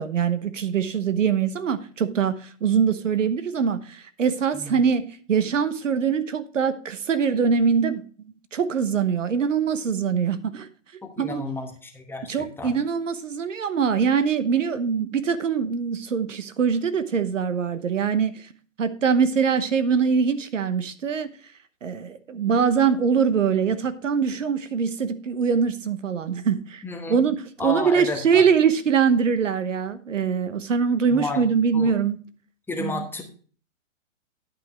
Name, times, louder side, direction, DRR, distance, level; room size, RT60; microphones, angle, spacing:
voice 1, 0.0-5.0 5.3-8.0 8.5-10.7 11.2-11.4 12.3-18.5 18.8-21.3 21.8-26.8 27.1-32.2 32.8-32.9, right 6 dB, 70° right, 1.1 m, -23 dB
voice 2, 11.0-12.8 26.8-27.2 27.6-28.4 31.1-31.4 31.7-31.9 32.7-33.2, left 3 dB, 5° left, 1.1 m, -32 dB
10.5 x 5.7 x 4.4 m
figure-of-eight pair, 125°, 39 cm